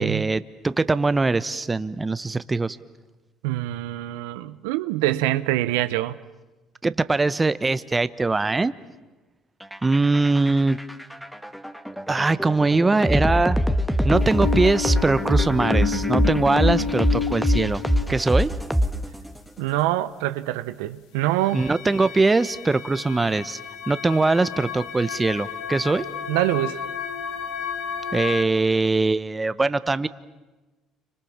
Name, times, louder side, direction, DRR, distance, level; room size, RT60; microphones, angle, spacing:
voice 1, 0.0-2.8 6.8-8.7 9.8-10.8 12.1-13.6 14.0-18.5 21.5-23.6 23.9-26.1 28.1-30.1, right 3 dB, 20° right, 1.1 m, -22 dB
voice 2, 3.4-6.2 19.6-21.6 26.3-26.8, right 15 dB, 80° right, 0.8 m, -25 dB
sound 1, 9.6-19.4, equal, ahead, 1.6 m, -24 dB
sound 2, 14.1-18.1 21.4-28.4, left 8 dB, 75° left, 2.3 m, -31 dB
30.0 x 25.5 x 7.4 m
hypercardioid pair, 70°, 0 cm